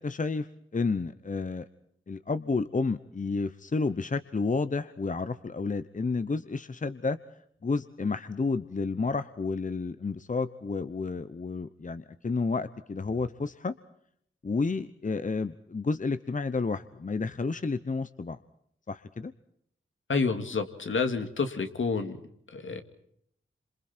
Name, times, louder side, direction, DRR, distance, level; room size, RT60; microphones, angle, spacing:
voice 1, 0.0-1.7 2.1-7.2 7.6-13.7 14.4-18.4 18.9-19.3, left 4 dB, 40° left, 12 dB, 0.9 m, -31 dB
voice 2, 20.1-22.1 22.5-22.8, left 4 dB, 70° left, 7 dB, 2.5 m, -29 dB
28.0 x 27.0 x 4.5 m, 0.69 s
cardioid pair, 55°, 21 cm